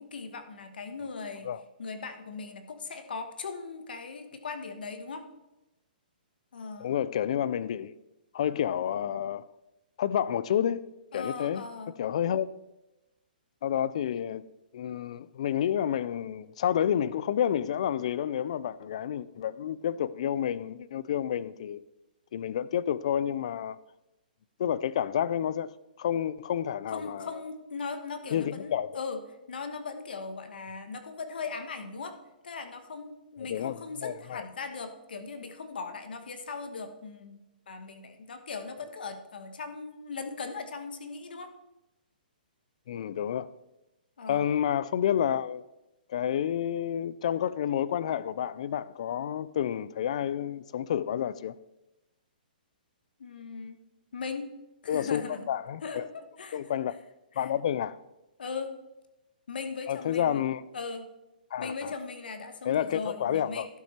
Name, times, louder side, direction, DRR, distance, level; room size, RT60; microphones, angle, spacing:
voice 1, 0.0-1.5 1.8-5.2 6.5-6.9 11.1-12.0 26.9-29.2 29.5-32.2 32.4-37.4 37.7-41.5 44.2-44.5 53.2-53.8 54.1-54.5 54.8-55.5 55.8-56.6 57.3-57.5 58.4-58.7 59.5-60.4 60.7-61.1 61.6-63.7, left 4 dB, 75° left, 1.3 m, -39 dB
voice 2, 6.8-7.9 8.3-9.4 10.0-10.9 11.1-11.7 12.0-12.5 13.6-14.4 14.7-21.8 22.3-23.8 24.6-25.7 26.0-27.4 28.3-29.0 33.5-34.4 42.9-43.5 44.3-45.6 46.1-51.5 54.9-55.2 55.5-56.1 56.5-56.9 57.4-58.0 59.9-60.6 61.5-61.9 62.6-63.7, left 9 dB, 45° left, 0.4 m, -29 dB
11.5 x 5.7 x 4.4 m
hypercardioid pair, 170°, 5 cm